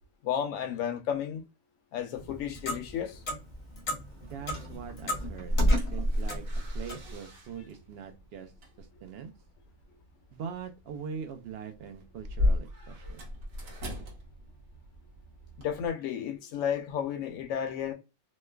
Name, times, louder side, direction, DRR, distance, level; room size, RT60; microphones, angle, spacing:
voice 1, 0.2-1.4 1.9-3.2 15.6-17.9, left 9 dB, 70° left, 0.9 m, -32 dB
Clock, 2.1-7.1, equal, 45° left, 0.7 m, -30 dB
voice 2, 4.2-8.5 8.8-9.3 10.3-13.3, right 6 dB, 65° right, 0.7 m, -42 dB
sound 1, 4.7-15.9, left 2 dB, 80° right, 1.3 m, -38 dB
3.1 x 2.1 x 2.2 m
omnidirectional pair, 1.4 m